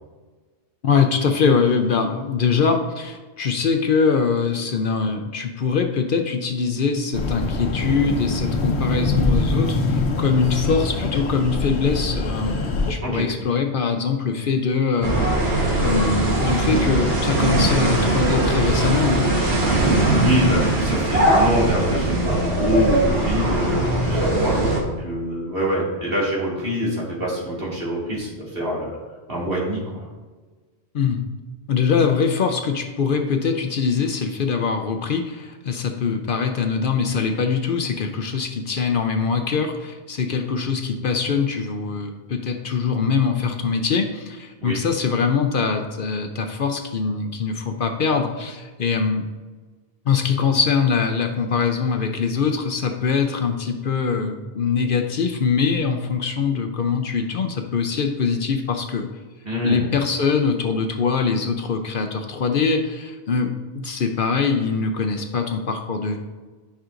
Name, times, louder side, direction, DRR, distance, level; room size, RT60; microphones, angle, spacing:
voice 1, 0.8-12.6 12.9-15.2 15.8-19.3 30.9-31.2 31.7-49.3 50.1-59.1 59.6-63.5 63.8-66.2, left 5 dB, 60° left, 5 dB, 0.8 m, -22 dB
sound 1, 7.1-12.9, left 2 dB, 80° left, 1.1 m, -24 dB
sound 2, 15.0-24.8, right 2 dB, 90° right, 1.6 m, -20 dB
voice 2, 20.1-29.0 29.3-30.0 44.6-44.8 59.4-59.9, equal, 60° right, -6 dB, 2.5 m, -25 dB
10.5 x 5.6 x 2.5 m, 1.3 s
omnidirectional pair, 1.1 m